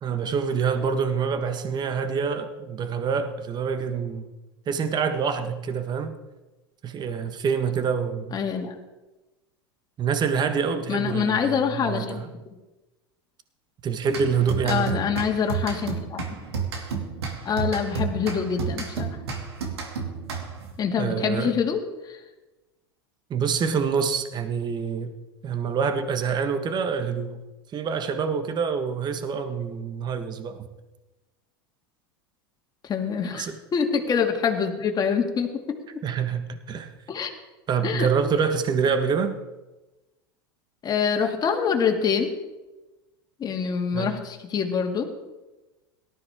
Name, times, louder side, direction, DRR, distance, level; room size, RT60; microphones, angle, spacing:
voice 1, 0.0-4.2 4.7-6.2 6.8-8.4 10.0-12.3 13.8-15.0 21.0-21.5 23.3-25.1 25.4-27.4 27.7-30.7 33.3-33.5 36.0-36.9 37.7-39.4 43.9-44.1, right 6 dB, 35° right, 9 dB, 1.4 m, -26 dB
voice 2, 8.3-8.7 10.9-12.2 14.6-16.2 17.4-19.2 20.8-22.2 32.8-35.6 37.1-37.3 37.8-38.1 40.8-42.3 43.4-45.1, left 6 dB, 30° left, 3 dB, 2.3 m, -25 dB
sound 1, 14.1-20.8, right 5 dB, 85° right, 2.6 m, -31 dB
18.0 x 13.0 x 3.7 m, 1.1 s
hypercardioid pair, 95°, 13 cm